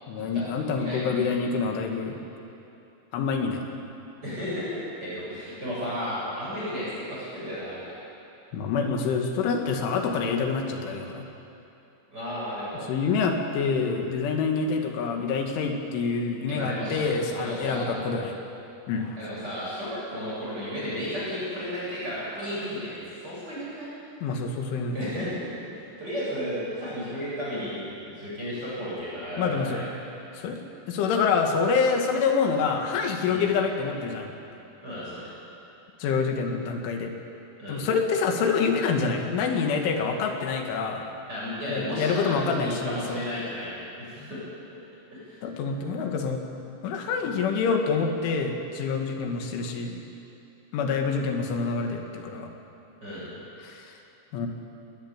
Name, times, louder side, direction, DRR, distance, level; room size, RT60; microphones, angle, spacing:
voice 1, 0.1-2.2 3.1-3.6 8.5-11.3 12.9-18.3 18.9-19.2 24.2-25.0 29.4-29.8 30.3-30.6 30.9-34.3 36.0-37.1 37.7-41.1 41.7-43.2 45.4-46.5 46.8-50.0 50.7-52.5 53.6-53.9 54.3-54.5, left 5 dB, 85° left, 3 dB, 4.3 m, -26 dB
voice 2, 0.7-1.2 4.2-7.9 12.1-12.9 16.5-17.1 17.3-17.9 19.2-23.9 24.9-25.6 26.0-29.8 33.3-33.4 34.8-35.3 37.6-37.8 41.3-43.7 44.0-44.4 45.1-45.4 53.0-53.3, equal, 20° right, -8 dB, 8.5 m, -33 dB
20.5 x 19.5 x 8.9 m, 2.8 s
omnidirectional pair, 5.4 m